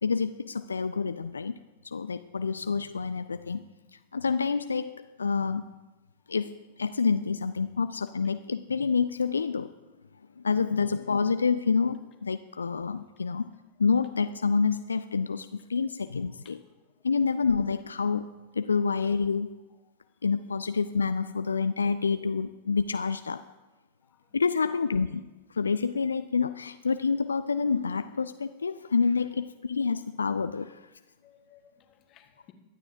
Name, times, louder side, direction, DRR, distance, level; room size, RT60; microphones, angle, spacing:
voice 1, 0.0-1.5 1.8-3.6 3.9-5.8 6.3-9.7 10.4-13.5 13.8-16.6 17.0-19.6 20.2-23.4 24.3-25.2 25.5-30.9, left 5 dB, 75° left, 11 dB, 0.3 m, -28 dB
voice 2, 12.6-13.0 16.4-16.6 16.9-17.0 18.8-19.0 24.0-24.4 30.6-30.7 31.2-32.5, left 10 dB, 35° left, 6 dB, 1.3 m, -60 dB
23.0 x 9.0 x 2.6 m, 1.1 s
figure-of-eight pair, 90°, 0 cm